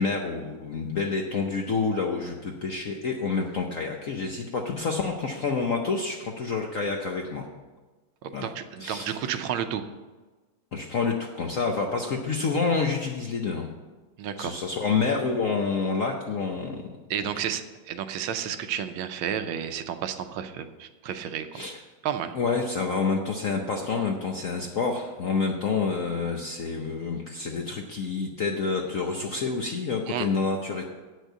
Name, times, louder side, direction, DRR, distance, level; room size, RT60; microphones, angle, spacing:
voice 1, 0.0-7.5 8.3-8.5 8.8-9.2 10.7-13.7 14.4-16.8 17.3-17.4 21.5-21.8 22.3-30.8, left 4 dB, 60° left, 2 dB, 0.8 m, -28 dB
voice 2, 8.2-9.8 14.2-14.6 17.1-21.6 22.0-22.3 30.1-30.3, right 9 dB, 75° right, 9 dB, 1.4 m, -31 dB
8.6 x 6.3 x 8.0 m, 1.3 s
omnidirectional pair, 2.3 m